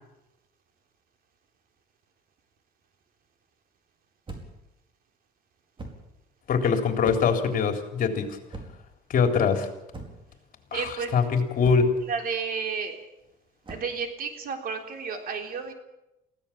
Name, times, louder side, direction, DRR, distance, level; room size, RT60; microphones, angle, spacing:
sound 1, 4.3-4.7 5.8-6.1 7.0-7.5 8.5-8.9 9.9-10.3 11.6-12.0 13.6-14.0, right 2 dB, 30° right, 4.6 m, -41 dB
voice 1, 6.5-8.3 9.1-9.7 10.7-11.9, left 6 dB, 55° left, 4 dB, 3.6 m, -23 dB
voice 2, 10.7-11.1 12.0-13.0 13.7-15.7, right 5 dB, 60° right, 4 dB, 3.7 m, -32 dB
23.0 x 16.5 x 7.4 m, 0.92 s
cardioid pair, 110°, 17 cm